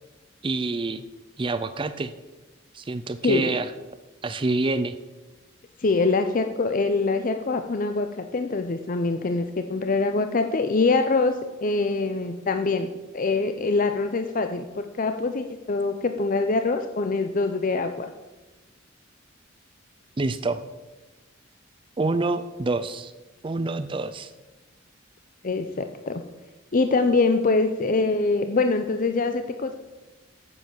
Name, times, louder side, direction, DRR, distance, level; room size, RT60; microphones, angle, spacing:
voice 1, 0.4-1.0 1.4-2.1 2.7-3.7 4.2-4.9 20.2-20.6 22.0-23.1 23.4-24.3, right 3 dB, 25° right, 12 dB, 0.4 m, -27 dB
voice 2, 3.2-3.5 5.8-18.1 25.4-26.2 26.7-29.7, left 3 dB, 40° left, 7 dB, 0.5 m, -24 dB
9.4 x 8.0 x 7.2 m, 1.1 s
head